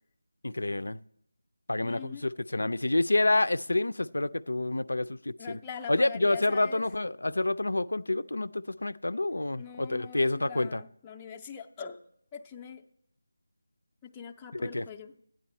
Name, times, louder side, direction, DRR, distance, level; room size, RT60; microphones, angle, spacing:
voice 1, 0.4-1.0 1.7-5.6 5.9-10.8 14.5-14.8, left 2 dB, 85° left, 0.4 m, -28 dB
voice 2, 1.8-2.3 5.4-6.8 9.6-12.0 12.3-12.8 14.0-15.2, left 7 dB, 10° left, 0.5 m, -43 dB
13.5 x 9.3 x 4.3 m
figure-of-eight pair, 170°, 0 cm